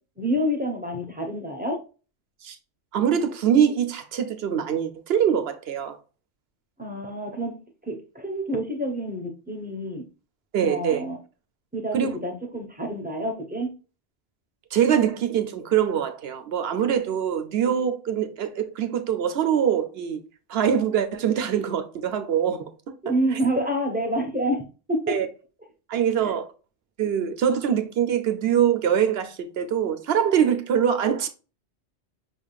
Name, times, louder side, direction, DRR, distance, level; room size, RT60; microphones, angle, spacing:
voice 1, 0.2-1.8 6.8-7.6 7.9-10.0 10.6-11.2 11.7-13.7 23.0-25.2 26.2-26.4, equal, 10° right, 0.9 m, -28 dB
voice 2, 2.9-6.0 10.5-11.0 11.9-12.1 14.7-20.2 20.5-22.7 23.1-23.2 25.1-25.3 25.9-26.5 27.0-31.3, right 8 dB, 65° right, 0.9 m, -23 dB
5.7 x 3.6 x 2.4 m
omnidirectional pair, 1.1 m